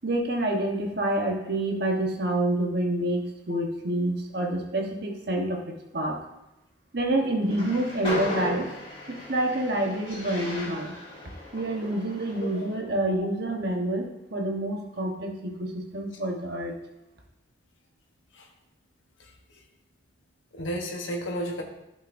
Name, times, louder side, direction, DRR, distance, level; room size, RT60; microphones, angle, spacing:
voice 1, 0.0-5.6 5.9-6.2 6.9-8.7 9.1-10.9 11.5-16.7, right 1 dB, 55° right, 1 dB, 1.2 m, -28 dB
Train, 7.4-12.7, left 1 dB, 30° left, 2.5 m, -36 dB
voice 2, 20.5-21.6, equal, 85° left, 1 dB, 1.2 m, -32 dB
12.0 x 5.4 x 2.7 m, 0.91 s
head